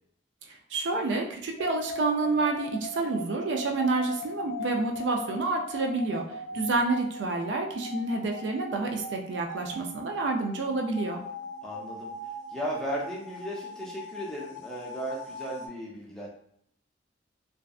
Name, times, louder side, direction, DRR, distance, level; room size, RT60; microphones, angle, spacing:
voice 1, 0.5-11.2, right 3 dB, 70° right, 2 dB, 0.4 m, -29 dB
sound 1, 1.6-15.7, left 1 dB, 70° left, 0.5 m, -40 dB
voice 2, 6.5-6.8 11.6-12.1 12.5-16.3, right 1 dB, 5° left, -5 dB, 0.5 m, -36 dB
2.6 x 2.2 x 2.3 m, 0.68 s
head